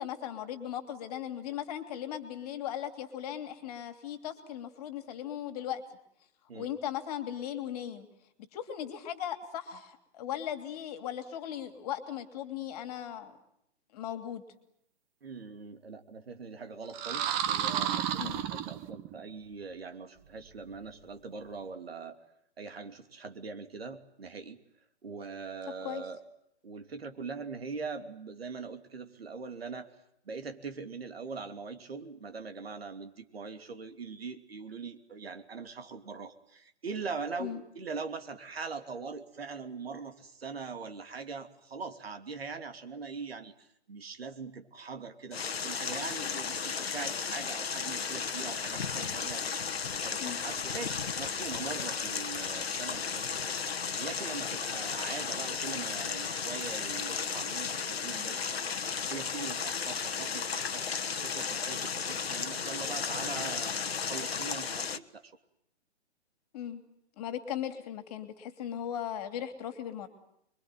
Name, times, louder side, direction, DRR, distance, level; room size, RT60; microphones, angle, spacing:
voice 1, 0.0-5.8 6.5-8.1 8.5-13.4 13.9-14.4 18.2-18.4 25.8-26.0 37.4-37.6 50.2-50.4 66.5-66.8 67.2-70.1, left 10 dB, 35° left, 8 dB, 3.1 m, -38 dB
voice 2, 15.2-22.2 22.6-24.6 25.0-26.2 26.6-29.9 30.2-49.4 49.9-53.5 54.0-60.8 61.1-65.3, right 4 dB, 60° right, 7 dB, 3.0 m, -42 dB
sound 1, 16.9-19.2, right 10 dB, 25° right, 1.4 m, -32 dB
sound 2, 45.3-65.0, left 6 dB, 65° left, 1.4 m, -34 dB
27.0 x 23.0 x 9.4 m, 0.75 s
figure-of-eight pair, 130°, 34 cm